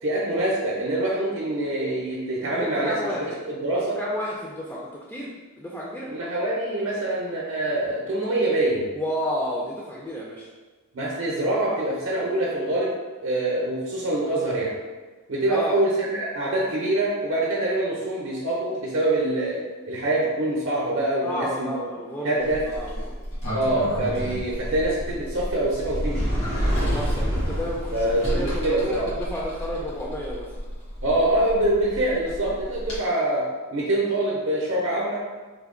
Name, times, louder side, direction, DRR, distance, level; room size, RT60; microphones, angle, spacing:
voice 1, 0.0-4.0 6.1-8.9 10.9-13.0 13.2-14.8 15.3-21.8 22.2-22.6 23.5-26.3 27.9-29.1 31.0-35.2, right 1 dB, 60° right, -4 dB, 0.6 m, -25 dB
voice 2, 2.4-3.4 4.0-6.1 8.9-10.5 15.5-15.8 21.2-23.1 26.9-30.5, equal, 10° left, -5 dB, 0.3 m, -31 dB
Sliding door, 22.4-33.0, equal, 85° left, 1.5 m, -29 dB
3.4 x 2.1 x 3.6 m, 1.3 s
head